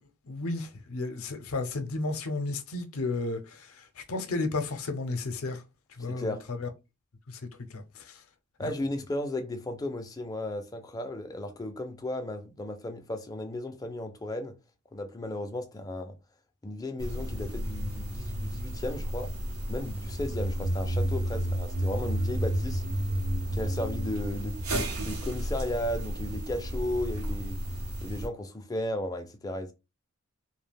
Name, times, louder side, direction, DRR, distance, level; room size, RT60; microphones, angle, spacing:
voice 1, 0.3-5.6 6.0-6.7 7.3-7.4 7.7-8.1 8.6-8.7, left 3 dB, 70° left, 0.5 m, -33 dB
voice 2, 6.1-6.4 8.6-14.6 14.9-16.2 16.6-19.3 19.7-22.8 23.5-27.6 28.0-29.7, left 1 dB, 15° left, 0.4 m, -35 dB
sound 1, 17.0-28.3, right 1 dB, 75° right, 0.8 m, -32 dB
2.3 x 2.1 x 3.3 m
head